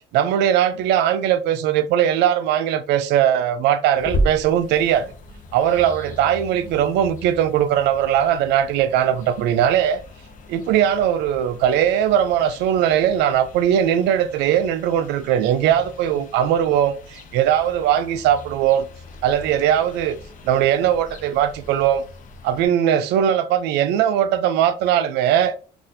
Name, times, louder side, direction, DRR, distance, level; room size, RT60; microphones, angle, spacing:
voice 1, 0.1-5.1 5.5-10.0 10.5-18.9 19.2-20.2 20.4-22.0 22.4-25.5, right 10 dB, 85° right, 0.4 m, -19 dB
sound 1, 3.9-22.7, equal, 50° left, 0.6 m, -36 dB
4.0 x 2.4 x 2.6 m
cardioid pair, 110°, 17 cm